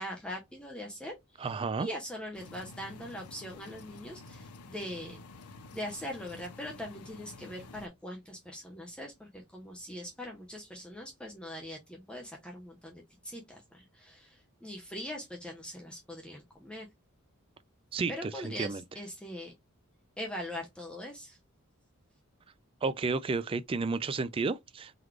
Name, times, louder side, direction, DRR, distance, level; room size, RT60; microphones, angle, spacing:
voice 1, 0.0-5.2 5.7-16.9 18.1-19.5 20.2-21.4, equal, 5° left, 0.7 m, -42 dB
voice 2, 1.4-1.9 17.9-18.8 22.8-24.9, right 4 dB, 25° right, 0.3 m, -32 dB
sound 1, 2.3-7.9, left 3 dB, 85° left, 0.6 m, -50 dB
3.9 x 3.1 x 3.1 m
head